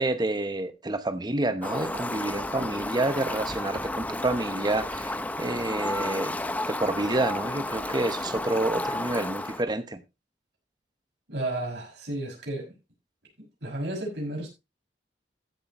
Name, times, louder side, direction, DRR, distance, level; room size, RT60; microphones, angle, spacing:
voice 1, 0.0-6.4 6.7-10.0, right 2 dB, 25° right, 0.9 m, -28 dB
Fowl, 1.6-9.6, left 1 dB, 10° left, 0.6 m, -32 dB
voice 2, 11.3-12.7 13.6-14.5, right 1 dB, 75° right, 6.4 m, -32 dB
15.5 x 8.0 x 3.0 m
head